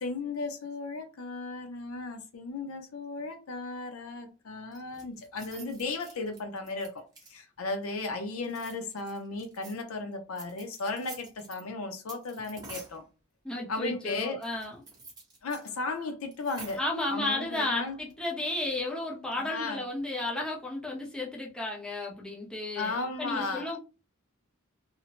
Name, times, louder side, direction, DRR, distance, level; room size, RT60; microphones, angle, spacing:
voice 1, 0.0-13.1 13.7-14.4 15.4-16.8 17.1-18.0 19.4-19.8 22.8-23.8, left 3 dB, 80° left, 0.6 m, -35 dB
sound 1, 4.7-7.6 8.4-9.8 10.4-11.6 12.1-13.0 14.4-15.7 16.0-16.1 16.3-17.0 17.9-18.2, right 3 dB, 20° right, 0.9 m, -49 dB
voice 2, 13.4-14.8 16.8-22.9 23.2-23.8, left 2 dB, 5° left, 0.7 m, -33 dB
2.8 x 2.0 x 2.8 m
head